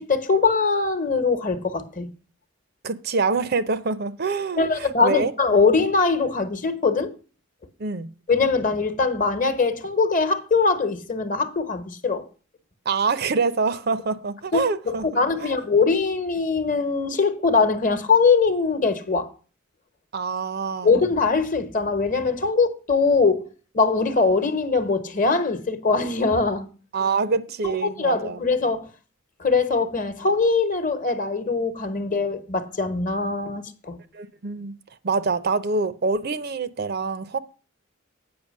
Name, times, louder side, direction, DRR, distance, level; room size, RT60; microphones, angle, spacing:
voice 1, 0.0-2.1 4.6-7.1 8.3-12.3 14.5-14.6 14.8-19.3 20.8-23.5 23.7-26.7 27.6-28.9 29.4-34.0, left 4 dB, 40° left, 1.0 m, -22 dB
voice 2, 2.8-5.3 7.8-8.1 12.9-15.0 15.4-15.5 20.1-20.9 26.9-28.4 34.1-34.7 35.0-37.4, right 4 dB, 50° right, 0.5 m, -25 dB
8.8 x 5.7 x 6.4 m
head